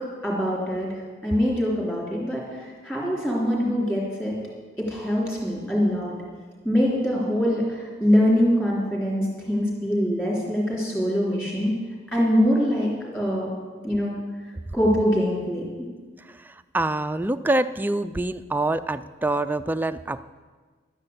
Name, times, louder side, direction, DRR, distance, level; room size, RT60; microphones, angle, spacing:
voice 1, 0.2-4.4 4.8-6.1 6.6-11.7 12.1-13.5 13.8-14.1 14.7-15.9, equal, 10° left, -4 dB, 3.3 m, -23 dB
voice 2, 16.3-20.2, right 2 dB, 10° right, 11 dB, 0.3 m, -26 dB
12.0 x 9.8 x 8.1 m, 1.4 s
head